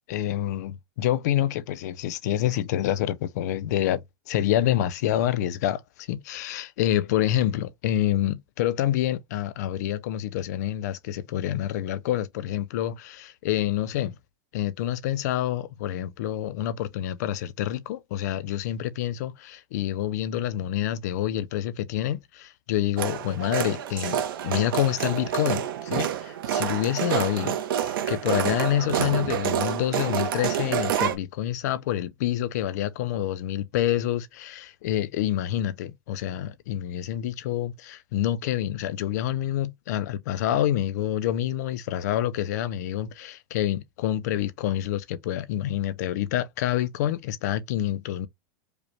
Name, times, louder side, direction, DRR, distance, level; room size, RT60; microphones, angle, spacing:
voice 1, 0.1-14.1 14.5-48.3, left 12 dB, 50° left, 0.4 m, -27 dB
sound 1, 23.0-31.2, right 10 dB, 70° right, 0.8 m, -28 dB
5.0 x 2.2 x 3.0 m
supercardioid pair, 175°, 12 cm